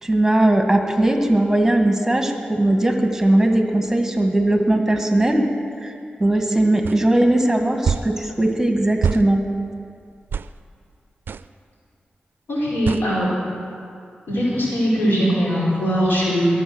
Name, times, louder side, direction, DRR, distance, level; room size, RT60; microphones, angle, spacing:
voice 1, 0.0-5.5 5.8-5.9 6.2-9.4, right 1 dB, 10° right, 3 dB, 1.8 m, -19 dB
sound 1, 6.8-7.0 7.8-8.1 9.0-9.3 10.3-10.5 11.3-11.5 12.9-13.1, right 6 dB, 75° right, 0.4 m, -23 dB
voice 2, 12.5-13.3 14.3-16.6, equal, 85° left, -6 dB, 4.8 m, -20 dB
22.5 x 7.9 x 6.2 m, 2.3 s
cardioid pair, 55°, 4 cm